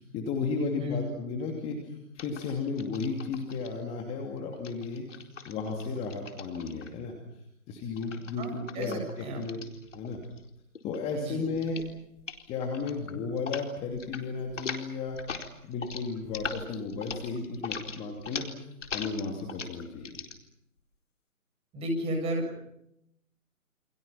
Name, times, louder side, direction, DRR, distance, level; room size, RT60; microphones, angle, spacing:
voice 1, 0.0-5.0 5.4-7.1 7.7-9.6 9.9-10.2 10.8-11.8 12.5-15.2 15.6-20.2, left 4 dB, 15° left, 2 dB, 2.7 m, -34 dB
sound 1, 2.2-3.7 4.5-7.1 8.0-10.5 10.8-11.1 11.5-11.9 12.2-12.4 12.7-13.6 13.9-14.2 14.5-20.3, left 5 dB, 55° left, 4.3 m, -40 dB
voice 2, 8.4-9.4 11.2-11.4 21.7-22.6, right 1 dB, 15° right, 3 dB, 7.2 m, -33 dB
29.5 x 28.0 x 5.8 m, 0.81 s
figure-of-eight pair, 150°, 44 cm